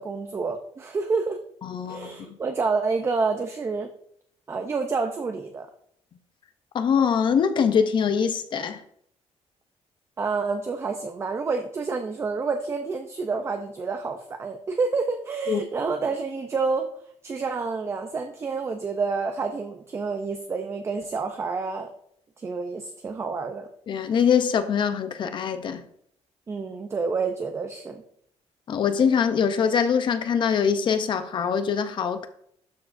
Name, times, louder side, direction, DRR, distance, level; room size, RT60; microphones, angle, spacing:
voice 1, 0.0-1.4 1.9-3.9 4.5-5.7 10.2-16.9 17.2-21.9 22.4-23.7 26.5-28.0, right 4 dB, 25° right, 0.5 m, -28 dB
voice 2, 1.6-2.4 6.7-8.8 15.5-15.6 23.9-25.8 28.7-32.3, left 7 dB, 45° left, 0.6 m, -23 dB
12.0 x 4.7 x 2.5 m
cardioid pair, 165°, 12 cm